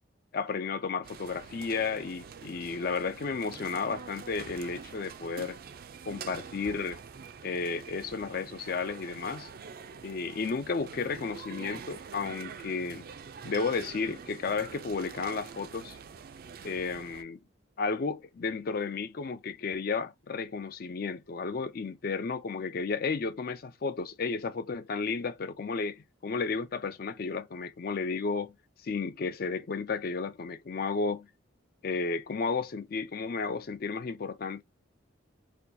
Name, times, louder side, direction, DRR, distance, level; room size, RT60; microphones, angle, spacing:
voice 1, 0.3-5.6 6.1-7.0 7.4-9.5 10.0-13.0 13.4-16.0 16.6-17.4 17.8-28.5 28.8-31.3 31.8-34.6, left 4 dB, 45° left, 0.4 m, -33 dB
sound 1, 1.0-17.2, right 6 dB, 45° right, 0.4 m, -45 dB
4.2 x 2.3 x 2.6 m
head